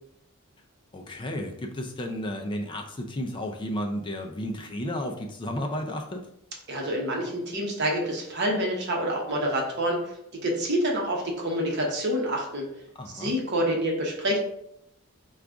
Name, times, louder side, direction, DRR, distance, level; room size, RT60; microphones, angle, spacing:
voice 1, 0.9-6.3 13.0-13.3, equal, 20° left, 3 dB, 0.3 m, -33 dB
voice 2, 6.7-12.6 13.1-14.4, equal, 50° right, -1 dB, 0.9 m, -27 dB
4.8 x 2.3 x 3.5 m, 0.76 s
head